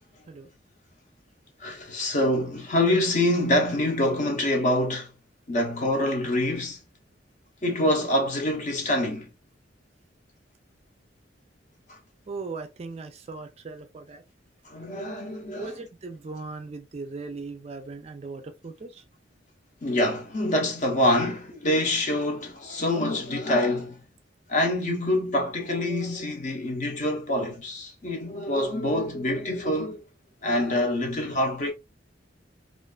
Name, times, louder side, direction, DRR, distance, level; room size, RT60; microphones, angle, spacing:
voice 1, 1.6-5.1 5.5-6.8 7.6-9.3 11.9-12.0 14.7-15.7 19.8-24.0 24.5-30.0 30.4-31.7, left 1 dB, 40° left, 0.7 m, -25 dB
voice 2, 12.3-14.2 15.5-19.0, right 3 dB, 35° right, 0.4 m, -38 dB
2.4 x 2.3 x 2.2 m
head